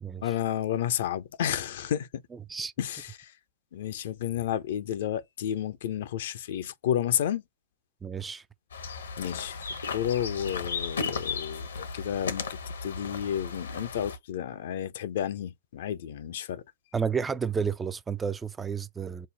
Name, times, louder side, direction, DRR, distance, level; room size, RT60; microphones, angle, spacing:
voice 1, 0.2-2.1 2.8-3.3 3.7-7.4 9.2-16.6, left 10 dB, 60° left, 0.5 m, -31 dB
voice 2, 8.0-8.4 16.9-19.3, right 6 dB, 15° right, 0.3 m, -31 dB
sound 1, 8.7-14.2, left 5 dB, 75° left, 0.9 m, -35 dB
5.4 x 2.0 x 4.0 m
figure-of-eight pair, 105°, 0 cm